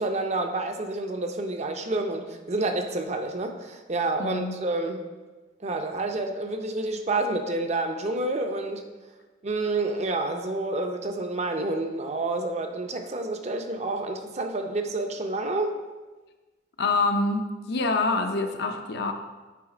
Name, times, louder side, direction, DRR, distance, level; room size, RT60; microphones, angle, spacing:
voice 1, 0.0-5.0 5.6-8.9 9.4-15.7, right 2 dB, 40° right, 0.6 m, -29 dB
voice 2, 4.2-4.6 16.8-19.1, left 3 dB, 65° left, 0.6 m, -26 dB
8.3 x 3.2 x 4.9 m
head